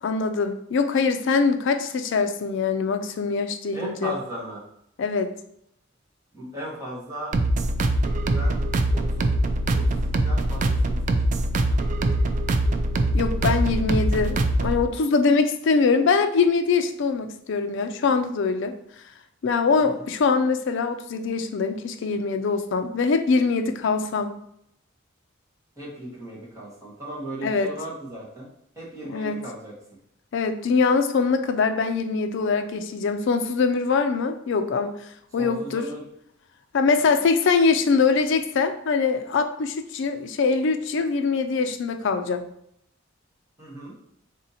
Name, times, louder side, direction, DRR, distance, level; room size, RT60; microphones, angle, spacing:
voice 1, 0.0-4.1 5.0-5.3 13.1-18.8 19.4-24.3 27.4-27.7 29.1-29.4 30.3-35.0 35.3-35.9 36.7-42.4, left 4 dB, 65° left, 8 dB, 0.4 m, -23 dB
voice 2, 3.7-4.6 6.3-7.3 8.3-8.6 8.9-9.3 9.7-11.0 11.3-11.4 11.7-11.8 25.8-28.5 28.8-29.7 35.4-36.0 43.6-43.9, right 1 dB, 15° right, -7 dB, 1.3 m, -36 dB
sound 1, 7.3-14.8, right 1 dB, 40° right, 0.3 m, -23 dB
3.5 x 2.7 x 4.0 m, 0.73 s
head